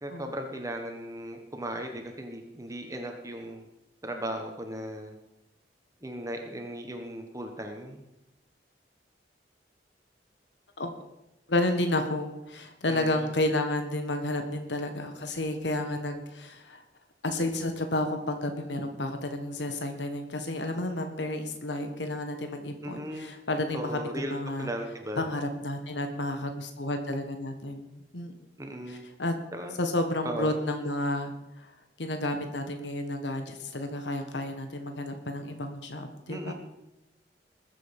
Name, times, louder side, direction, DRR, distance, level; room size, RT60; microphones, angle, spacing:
voice 1, 0.0-3.6 4.0-5.2 6.0-8.0 12.9-13.3 22.8-23.3 23.7-25.2 28.6-29.0 29.5-29.7 30.2-30.6 36.3-36.5, right 1 dB, 20° right, 3 dB, 1.3 m, -37 dB
voice 2, 11.5-16.8 17.2-24.7 25.2-28.3 28.9-29.3 29.8-31.7 32.0-36.5, left 1 dB, 85° left, 6 dB, 1.5 m, -31 dB
20.5 x 7.7 x 5.4 m, 0.92 s
head